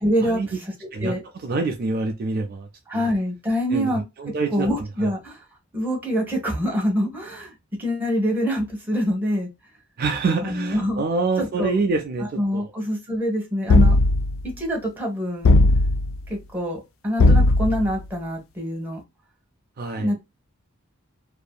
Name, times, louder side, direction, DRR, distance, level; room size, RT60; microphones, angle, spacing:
voice 1, 0.0-0.7 1.0-1.2 2.9-4.0 4.5-5.4 5.7-7.5 7.8-9.5 10.4-11.0 11.4-11.7 12.2-13.9 14.4-15.5 16.3-19.0 20.0-20.1, equal, 10° right, 1.0 m, -25 dB
voice 2, 0.9-2.7 2.9-3.1 3.7-4.7 10.0-12.7 19.8-20.1, right 3 dB, 45° right, 0.4 m, -26 dB
sound 1, 13.7-14.4 15.4-16.2 17.2-17.9, left 2 dB, 70° left, 0.3 m, -16 dB
2.6 x 2.5 x 2.2 m
head